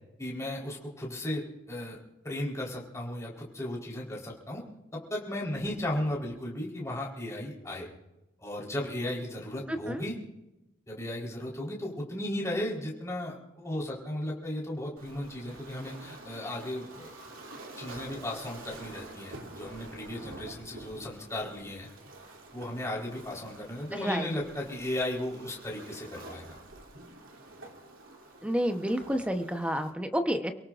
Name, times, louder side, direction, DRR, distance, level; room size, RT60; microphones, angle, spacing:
voice 1, 0.2-2.0 2.2-4.6 5.1-7.9 8.4-10.1 10.9-17.1 17.8-21.9 22.5-26.5, left 1 dB, 15° left, -3 dB, 4.2 m, -35 dB
voice 2, 9.7-10.0 23.9-24.3 28.4-30.5, equal, 5° right, 6 dB, 1.0 m, -30 dB
Waves surf, 15.0-29.9, right 2 dB, 85° right, 2.9 m, -48 dB
28.5 x 18.0 x 2.6 m, 0.98 s
head